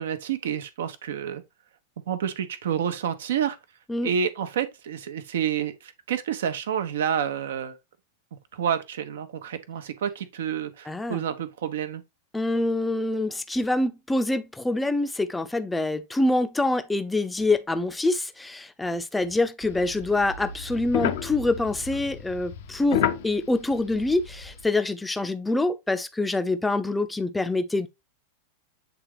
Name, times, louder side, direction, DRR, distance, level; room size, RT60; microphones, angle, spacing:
voice 1, 0.0-1.4 2.1-3.6 4.0-7.8 8.3-12.0, right 8 dB, 60° right, 1.0 m, -29 dB
voice 2, 10.9-11.2 12.3-27.9, left 2 dB, 5° left, 0.7 m, -25 dB
sound 1, 19.6-24.6, left 9 dB, 55° left, 0.7 m, -31 dB
8.1 x 3.8 x 3.1 m
figure-of-eight pair, 90°, 0 cm